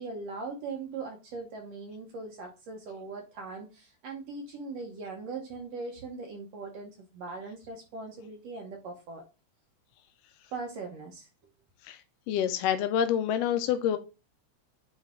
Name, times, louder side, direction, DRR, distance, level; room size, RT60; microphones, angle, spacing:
voice 1, 0.0-9.2 10.5-11.3, right 4 dB, 70° right, 2 dB, 1.9 m, -40 dB
voice 2, 12.3-14.0, left 9 dB, 85° left, 8 dB, 1.4 m, -27 dB
9.0 x 3.2 x 3.6 m, 0.30 s
omnidirectional pair, 3.3 m